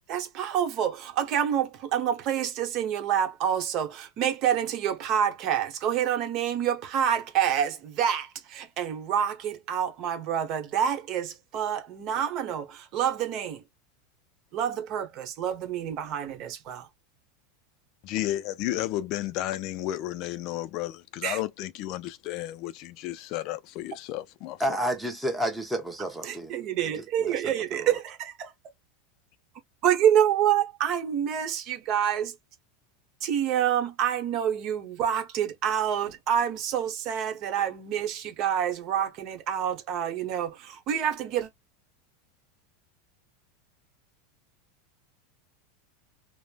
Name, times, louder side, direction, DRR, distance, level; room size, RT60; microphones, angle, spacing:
voice 1, 0.1-13.6 14.5-16.9 21.2-21.4 26.2-28.5 29.8-32.3 33.2-41.5, right 9 dB, 45° right, 0.9 m, -27 dB
voice 2, 18.0-24.6, left 14 dB, 50° left, 0.3 m, -32 dB
voice 3, 24.6-26.5 26.9-27.9, equal, ahead, 0.9 m, -31 dB
3.2 x 2.0 x 2.4 m
supercardioid pair, 125°, 0 cm